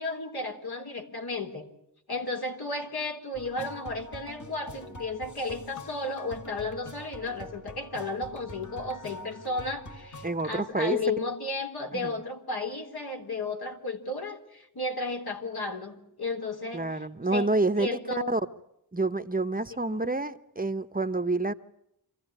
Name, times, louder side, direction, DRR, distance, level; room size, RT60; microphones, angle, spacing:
voice 1, 0.0-1.7 2.1-16.8 17.3-17.5 17.8-18.4 19.9-20.2, left 3 dB, 70° left, 3.7 m, -33 dB
sound 1, 3.3-10.6, left 1 dB, 50° left, 1.9 m, -45 dB
voice 2, 10.2-11.0 11.9-12.1 16.7-18.4 18.9-21.5, right 2 dB, 20° right, 0.9 m, -28 dB
26.5 x 15.5 x 9.9 m
wide cardioid pair, 80°, 39 cm